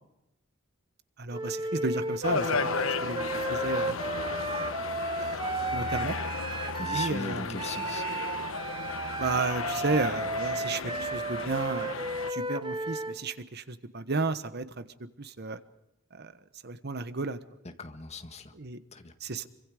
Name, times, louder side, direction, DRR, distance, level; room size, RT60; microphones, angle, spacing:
voice 1, 1.2-4.0 4.6-4.8 5.2-5.4 5.7-6.2 6.9-7.6 9.2-12.0 12.3-15.6 16.1-16.3 16.6-17.4 18.5-18.8 19.2-19.5, right 3 dB, 55° right, 12 dB, 1.3 m, -33 dB
Wind instrument woodwind instrument, 1.3-7.2 7.6-13.2, right 2 dB, 25° right, 0.9 m, -34 dB
sound 1, 2.2-12.3, left 4 dB, 90° left, 1.1 m, -34 dB
sound 2, 5.8-8.3, left 3 dB, 50° left, 3.1 m, -48 dB
voice 2, 6.8-8.1 17.6-18.5 18.9-19.1, left 3 dB, 35° left, 7 dB, 1.7 m, -39 dB
26.5 x 24.5 x 5.0 m, 0.89 s
head